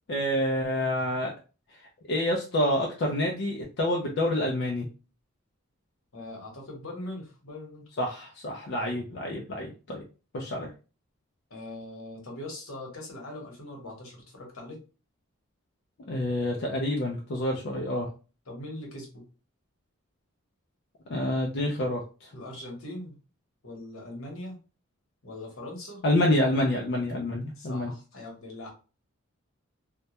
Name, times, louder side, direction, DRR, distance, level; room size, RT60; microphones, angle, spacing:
voice 1, 0.1-1.3 2.1-4.9 8.0-10.0 10.3-10.7 16.1-18.1 21.1-22.3 26.0-27.9, left 1 dB, 55° left, -1 dB, 0.4 m, -27 dB
voice 2, 6.1-7.8 11.5-14.8 18.5-19.2 22.3-23.1 23.6-24.6 25.2-26.0 27.6-28.7, left 1 dB, 80° left, 0 dB, 1.0 m, -41 dB
2.2 x 2.1 x 2.8 m, 0.34 s
head